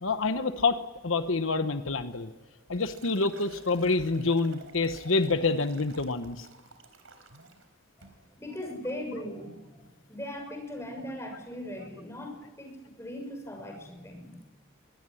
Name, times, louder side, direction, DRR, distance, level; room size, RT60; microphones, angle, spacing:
voice 1, 0.0-2.3 2.7-6.5, left 3 dB, 85° left, 9 dB, 1.1 m, -27 dB
Liquid, 2.1-7.7 8.0-8.3 8.6-9.0, right 4 dB, 90° right, 4.0 m, -53 dB
voice 2, 8.4-14.5, left 1 dB, 15° left, 3 dB, 6.5 m, -39 dB
23.5 x 17.5 x 10.0 m, 1.2 s
head